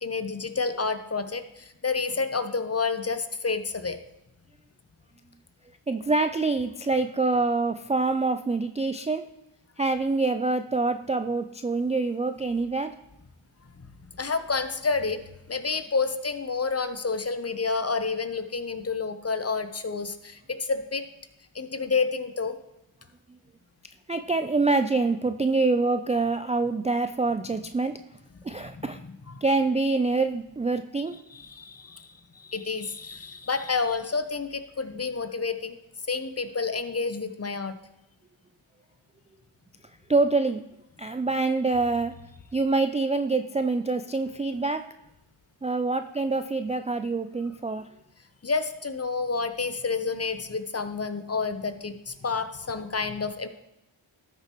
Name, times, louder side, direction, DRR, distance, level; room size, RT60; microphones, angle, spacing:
voice 1, 0.0-4.0 14.2-15.2 15.5-21.0 21.5-22.6 28.8-29.4 31.3-35.8 36.1-37.8 48.4-53.5, left 4 dB, 30° left, 10 dB, 0.8 m, -29 dB
voice 2, 5.9-9.2 9.8-12.9 24.1-28.0 28.4-29.0 29.4-31.2 40.1-40.6 41.0-42.1 42.5-44.8 45.6-47.9, right 3 dB, 15° right, 8 dB, 0.3 m, -25 dB
12.5 x 6.8 x 3.0 m, 0.89 s
cardioid pair, 40°, 49 cm